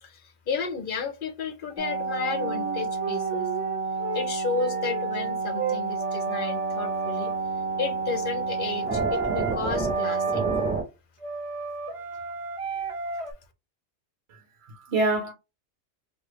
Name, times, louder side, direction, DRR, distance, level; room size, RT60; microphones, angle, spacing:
voice 1, 0.0-3.4 4.1-7.3 7.8-10.4, left 5 dB, 55° left, 0.8 m, -32 dB
sound 1, 1.8-10.8, right 4 dB, 10° right, 0.8 m, -29 dB
sound 2, 2.3-4.3 4.5-7.4 8.8-10.8 11.2-13.3, right 5 dB, 45° right, 0.4 m, -32 dB
voice 2, 14.3-15.3, right 2 dB, 65° right, 1.2 m, -27 dB
3.3 x 2.5 x 3.2 m
omnidirectional pair, 1.2 m